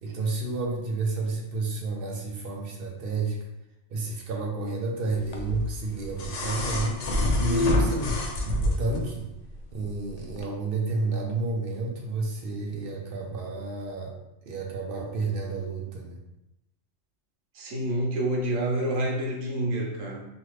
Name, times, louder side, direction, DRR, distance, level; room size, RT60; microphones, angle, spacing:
voice 1, 0.0-3.4 3.9-8.2 8.5-9.3 9.7-14.1 14.4-16.2, right 3 dB, 60° right, 0 dB, 0.7 m, -31 dB
sound 1, 5.3-9.1 10.4-10.5, left 1 dB, 80° left, 0.3 m, -26 dB
voice 2, 17.5-20.2, right 1 dB, 85° right, -1 dB, 1.1 m, -28 dB
2.8 x 2.5 x 3.1 m, 0.89 s
omnidirectional pair, 1.2 m